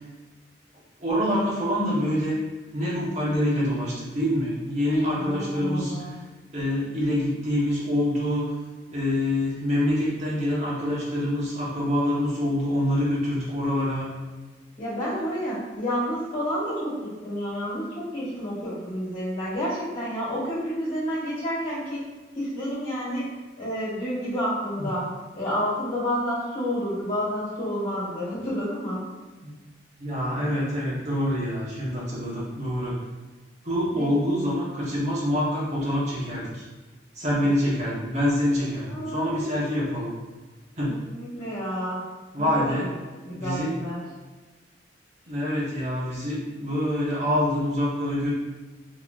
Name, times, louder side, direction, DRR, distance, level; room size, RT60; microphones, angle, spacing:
voice 1, 1.0-2.4 2.7-6.1 6.5-8.5 8.9-14.1 24.8-24.9 29.4-29.5 30.0-33.0 33.6-36.6 37.1-40.1 40.8-40.9 42.3-42.8 43.4-43.7 45.3-48.3, equal, 40° right, -7 dB, 1.0 m, -26 dB
voice 2, 5.1-6.1 14.8-22.0 22.3-25.1 25.3-29.0 33.9-34.1 38.8-39.5 40.8-42.9 43.2-44.0, equal, 45° left, -12 dB, 1.5 m, -30 dB
4.0 x 2.9 x 2.4 m, 1.3 s
head